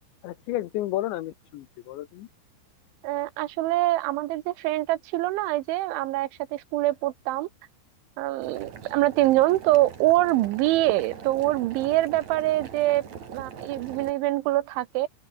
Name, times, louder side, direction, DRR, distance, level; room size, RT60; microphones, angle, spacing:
voice 1, 0.2-2.3, left 15 dB, 75° left, 3.2 m, -32 dB
voice 2, 3.0-7.5 8.2-13.1 13.3-15.1, right 16 dB, 80° right, 3.2 m, -24 dB
Boiling, 8.4-14.1, right 7 dB, 40° right, 3.6 m, -42 dB
open air
omnidirectional pair, 5.6 m